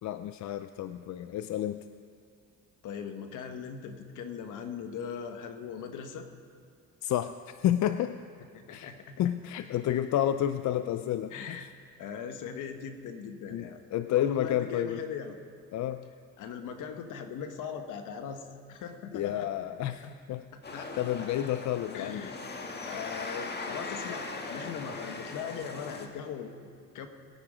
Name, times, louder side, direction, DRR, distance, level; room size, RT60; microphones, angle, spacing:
voice 1, 0.0-1.8 7.0-8.2 8.7-8.9 9.2-11.6 13.5-15.0 15.7-16.1 19.1-20.4 21.0-22.3, left 11 dB, 65° left, 11 dB, 0.5 m, -30 dB
voice 2, 2.8-6.3 8.5-9.3 11.3-11.7 12.0-13.8 14.1-15.4 16.4-19.5 20.0-20.2 20.5-20.9 21.9-22.4 22.8-27.1, left 7 dB, 85° left, 7 dB, 1.2 m, -40 dB
sound 1, 20.6-26.1, left 3 dB, 35° left, 1.7 m, -39 dB
21.0 x 9.1 x 4.9 m, 2.3 s
cardioid pair, 90°, 30 cm